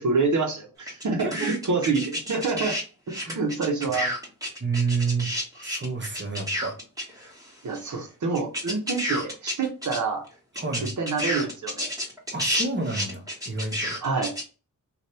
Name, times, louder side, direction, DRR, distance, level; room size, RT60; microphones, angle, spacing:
voice 1, 0.0-2.7 3.1-4.1 7.6-10.2 10.8-11.9 14.0-14.3, right 4 dB, 60° right, 2 dB, 1.0 m, -27 dB
sound 1, 0.9-2.8 3.1-7.5 7.8-7.9 8.3-10.0 10.3-10.4 10.6-14.4, equal, 10° right, 1.2 m, -30 dB
voice 2, 4.6-6.7 10.5-10.9 12.3-14.0, right 4 dB, 35° right, 3 dB, 1.0 m, -29 dB
2.7 x 2.5 x 3.3 m, 0.35 s
cardioid pair, 65°, 34 cm